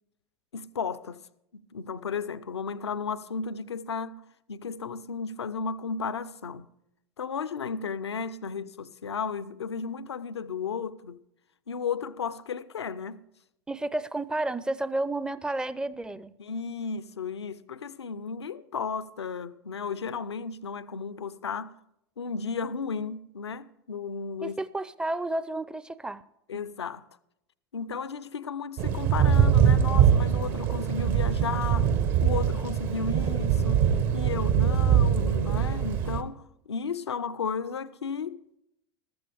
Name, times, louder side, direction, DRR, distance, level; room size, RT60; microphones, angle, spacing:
voice 1, 0.5-1.2 1.5-6.7 7.2-11.2 11.7-13.2 16.4-21.7 22.2-24.6 26.5-27.0 27.7-31.9 32.2-38.4, left 5 dB, 85° left, 0.5 m, -34 dB
voice 2, 13.7-16.3 24.4-26.2, right 2 dB, 5° right, 0.4 m, -31 dB
Thunder / Rain, 28.8-36.2, right 8 dB, 55° right, 0.9 m, -23 dB
14.0 x 13.5 x 3.4 m
figure-of-eight pair, 85°, 14 cm